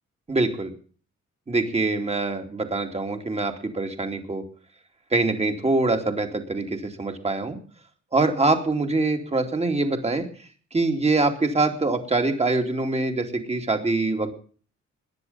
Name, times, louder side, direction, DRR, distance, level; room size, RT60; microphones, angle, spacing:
voice 1, 0.3-0.7 1.5-4.4 5.1-7.6 8.1-10.2 10.7-14.3, right 3 dB, 20° right, 5 dB, 2.6 m, -24 dB
21.5 x 10.5 x 5.6 m, 0.44 s
wide cardioid pair, 160°, 29 cm